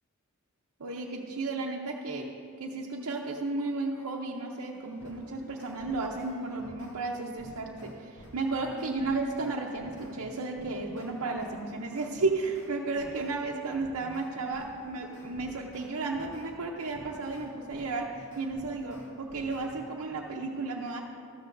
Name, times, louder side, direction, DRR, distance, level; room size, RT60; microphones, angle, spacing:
voice 1, 0.8-2.3 2.6-21.0, right 3 dB, 80° right, -1 dB, 0.7 m, -33 dB
sound 1, 4.7-7.0 7.4-13.3 13.7-16.5 16.9-19.9, left 1 dB, 55° left, 2.5 m, -51 dB
14.0 x 13.0 x 2.6 m, 2.5 s
head